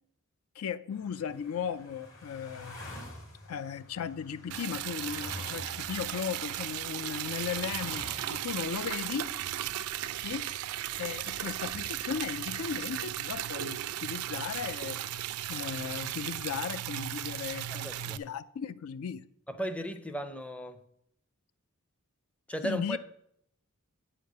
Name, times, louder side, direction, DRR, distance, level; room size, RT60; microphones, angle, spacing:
voice 1, 0.6-2.8 3.5-9.4 10.2-10.5 11.0-15.0 15.5-19.2 22.6-23.0, left 7 dB, 75° left, 0.4 m, -36 dB
sound 1, 0.9-8.8, left 1 dB, 60° left, 2.1 m, -47 dB
Liquid, 4.5-18.2, right 12 dB, 80° right, 0.4 m, -36 dB
voice 2, 17.8-18.2 19.6-20.8 22.5-23.0, right 1 dB, 5° left, 0.5 m, -35 dB
8.7 x 5.1 x 6.5 m
head